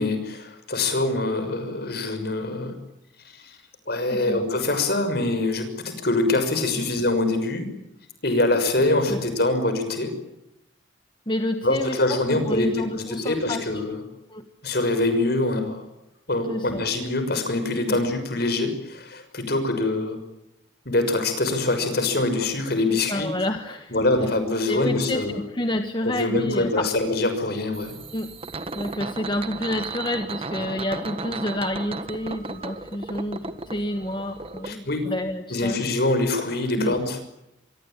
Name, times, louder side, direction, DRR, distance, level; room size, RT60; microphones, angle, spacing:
voice 1, 0.0-2.7 3.3-3.6 3.9-7.7 8.2-10.1 11.6-14.0 14.6-15.8 16.3-20.2 20.8-23.3 23.9-25.4 26.0-28.0 34.6-35.1 35.5-37.2, left 2 dB, 55° left, 9 dB, 6.2 m, -24 dB
voice 2, 4.1-4.4 6.8-6.9 9.1-9.2 11.3-13.7 14.3-14.4 16.5-16.8 17.9-18.0 23.1-23.9 24.7-26.9 28.1-28.3 28.7-35.8 36.8-36.9, left 1 dB, 25° left, 7 dB, 1.5 m, -29 dB
sound 1, 27.7-34.7, right 3 dB, 30° right, 1.5 m, -35 dB
26.5 x 23.5 x 9.0 m, 0.85 s
head